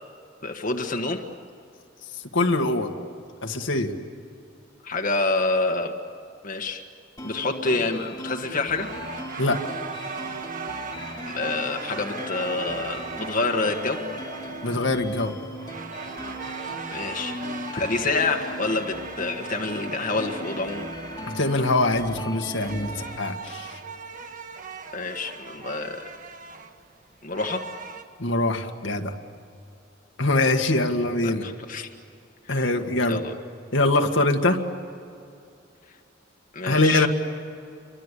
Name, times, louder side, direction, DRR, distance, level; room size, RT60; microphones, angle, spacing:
voice 1, 0.4-1.2 4.8-5.9 6.4-6.8 7.2-8.9 11.2-14.0 16.9-17.4 17.7-20.9 24.9-26.0 27.2-27.6 31.2-31.9 32.5-32.6 33.1-33.3 36.5-37.1, left 3 dB, 45° left, 3 dB, 1.6 m, -27 dB
voice 2, 2.3-2.9 3.4-3.9 9.4-9.7 14.6-15.3 21.2-23.7 28.2-29.1 30.2-31.4 32.5-33.2 33.7-34.6 36.6-37.1, left 2 dB, 75° left, 3 dB, 1.9 m, -23 dB
sound 1, 7.2-23.2, left 1 dB, 20° left, 2.0 m, -38 dB
sound 2, 8.6-28.0, right 5 dB, 45° right, 1.5 m, -38 dB
29.0 x 24.5 x 8.4 m, 2.5 s
head